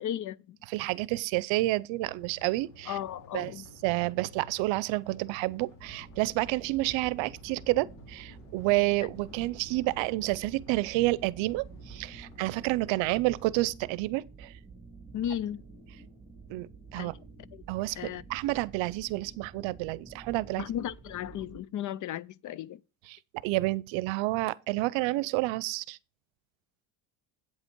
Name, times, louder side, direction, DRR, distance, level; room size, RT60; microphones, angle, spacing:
voice 1, 0.0-0.6 2.9-3.6 15.1-15.6 17.0-17.1 17.4-17.6 18.0-18.2 20.6-22.8, left 10 dB, 45° left, 0.4 m, -35 dB
voice 2, 0.7-3.0 3.3-3.5 3.8-14.5 16.5-17.2 17.7-20.7 23.1-26.0, right 19 dB, 75° right, 0.7 m, -29 dB
sound 1, 2.0-13.7, left 1 dB, 85° left, 3.3 m, -53 dB
sound 2, 5.8-21.6, right 4 dB, 15° right, 2.3 m, -50 dB
8.6 x 8.1 x 4.5 m
cardioid pair, 130°, 45 cm